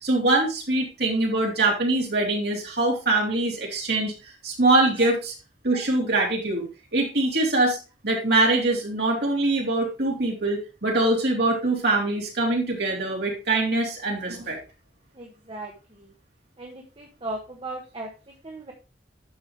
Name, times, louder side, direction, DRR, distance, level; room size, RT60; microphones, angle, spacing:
voice 1, 0.0-4.1 4.4-5.3 5.6-7.8 8.0-14.6, right 2 dB, 65° right, -1 dB, 3.4 m, -23 dB
voice 2, 15.1-16.1 16.6-18.7, right 2 dB, 30° right, 1 dB, 1.3 m, -37 dB
11.5 x 5.4 x 3.3 m, 0.30 s
head